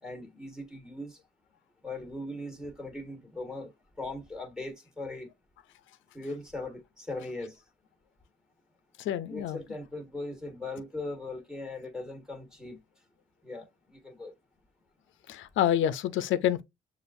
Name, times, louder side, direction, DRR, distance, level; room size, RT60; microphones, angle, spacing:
voice 1, 0.0-1.2 1.8-3.7 4.0-5.3 6.1-7.6 9.3-12.8 13.4-14.3, left 2 dB, 5° right, 1.4 m, -39 dB
voice 2, 9.1-9.6 15.3-16.6, left 11 dB, 75° left, 0.5 m, -27 dB
6.7 x 2.5 x 2.6 m
cardioid pair, 90°, 20 cm